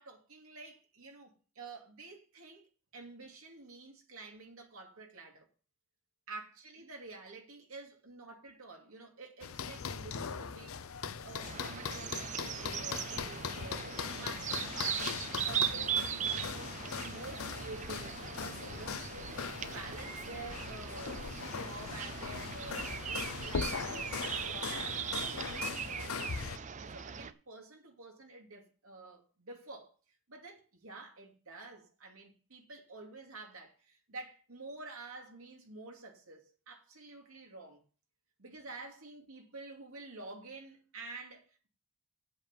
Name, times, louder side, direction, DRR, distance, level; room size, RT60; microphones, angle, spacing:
voice 1, 0.0-5.5 6.3-19.3 19.6-24.2 24.4-29.9 30.3-37.8 38.4-41.7, right 3 dB, 75° right, 2.5 m, -49 dB
sound 1, 9.4-26.6, left 6 dB, 75° left, 0.6 m, -40 dB
sound 2, 11.4-27.3, right 8 dB, 35° right, 0.5 m, -39 dB
7.8 x 6.9 x 7.2 m
head